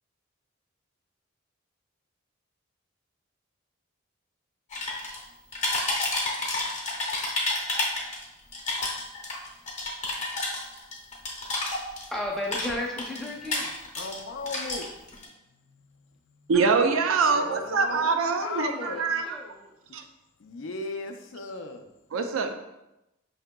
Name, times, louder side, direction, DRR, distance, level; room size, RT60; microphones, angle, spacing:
sound 1, 4.7-5.2 5.5-8.2 8.5-12.2 12.4-14.2 14.5-15.2, left 2 dB, 35° left, 0.7 m, -30 dB
voice 1, 12.1-13.7 16.5-19.7, left 1 dB, ahead, -3 dB, 0.5 m, -36 dB
voice 2, 14.0-14.9 15.5-16.5 17.3-19.0 20.4-22.0, left 3 dB, 65° left, 5 dB, 0.4 m, -37 dB
voice 3, 16.5-19.2 19.9-20.0 22.1-22.5, right 4 dB, 80° right, 6 dB, 0.4 m, -24 dB
5.6 x 2.8 x 2.2 m, 0.93 s
head